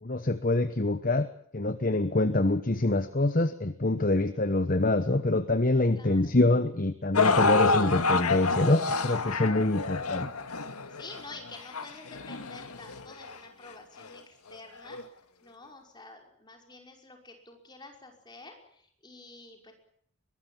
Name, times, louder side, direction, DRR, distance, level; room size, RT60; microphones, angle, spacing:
voice 1, 0.0-10.3, left 2 dB, 40° left, 11 dB, 1.0 m, -25 dB
voice 2, 5.9-6.3 10.9-15.0 15.4-19.7, left 3 dB, 20° left, 3 dB, 5.5 m, -49 dB
sound 1, 7.1-13.4 14.1-14.2 14.9-15.0, left 4 dB, 85° left, 1.8 m, -28 dB
23.0 x 21.0 x 7.2 m, 0.67 s
head